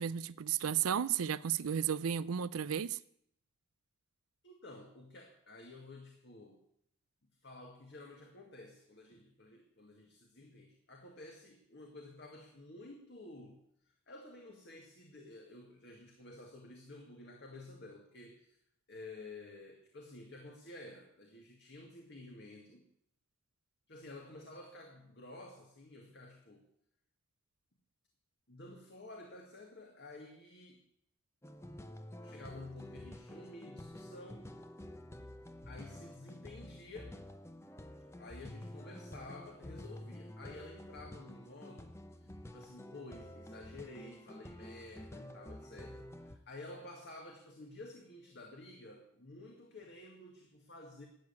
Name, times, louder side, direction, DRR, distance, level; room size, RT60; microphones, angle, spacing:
voice 1, 0.0-3.0, right 8 dB, 85° right, 0.5 m, -33 dB
voice 2, 4.4-6.6 7.4-18.6 18.9-22.9 23.9-26.6 28.5-30.8 32.2-34.5 35.7-37.2 38.2-51.1, left 2 dB, 50° left, 2.1 m, -52 dB
sound 1, 31.4-46.4, left 1 dB, 10° left, 0.8 m, -50 dB
13.0 x 8.9 x 9.6 m
head